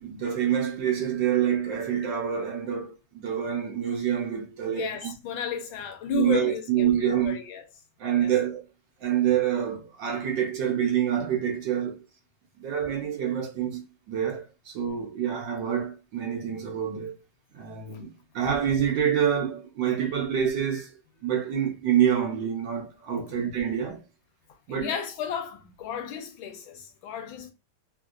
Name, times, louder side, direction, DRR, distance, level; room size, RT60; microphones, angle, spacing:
voice 1, 0.0-5.1 6.1-7.4 8.0-8.6 9.0-12.0 12.6-13.8 14.1-17.1 17.5-24.0 24.7-24.9, right 9 dB, 65° right, 1.3 m, -27 dB
voice 2, 4.7-7.6 8.1-8.3 17.9-18.0 23.2-23.3 24.7-27.5, left 8 dB, 80° left, 1.4 m, -34 dB
3.6 x 2.7 x 2.3 m
omnidirectional pair, 2.3 m